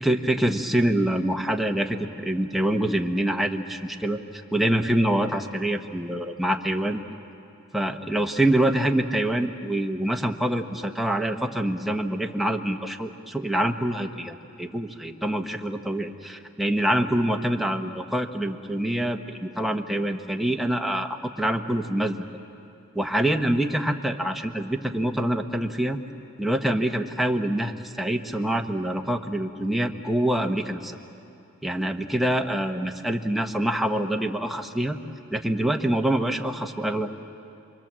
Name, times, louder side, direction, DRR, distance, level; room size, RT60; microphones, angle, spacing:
voice 1, 0.0-4.2 4.5-7.0 7.7-22.3 22.9-26.0 26.4-31.0 31.6-35.0 35.3-37.1, right 1 dB, ahead, 3 dB, 1.0 m, -25 dB
28.5 x 23.0 x 7.5 m, 2.6 s
head